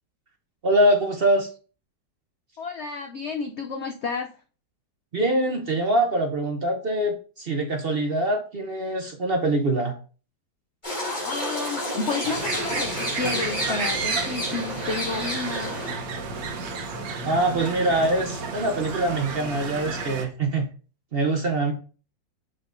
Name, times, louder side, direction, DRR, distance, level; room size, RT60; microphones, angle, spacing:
voice 1, 0.6-1.5 5.1-10.0 17.2-20.7 21.1-21.7, right 1 dB, 45° right, 3 dB, 0.8 m, -24 dB
voice 2, 2.6-4.3 11.2-15.7, left 4 dB, 85° left, 5 dB, 0.6 m, -31 dB
sound 1, 10.8-15.9, left 1 dB, 25° left, 3.4 m, -30 dB
sound 2, 12.2-20.2, right 4 dB, 90° right, 1.6 m, -32 dB
6.9 x 5.4 x 2.6 m, 0.38 s
omnidirectional pair, 1.9 m